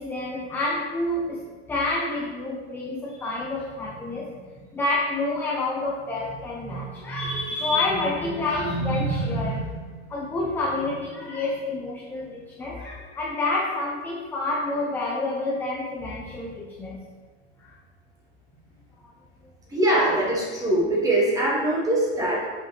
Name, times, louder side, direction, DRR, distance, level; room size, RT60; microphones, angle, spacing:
voice 1, 0.0-17.1 17.6-17.7, left 2 dB, 5° left, -4 dB, 0.4 m, -28 dB
voice 2, 19.7-22.5, right 1 dB, 10° right, -4 dB, 1.3 m, -22 dB
6.0 x 5.1 x 3.2 m, 1.4 s
supercardioid pair, 155°, 33 cm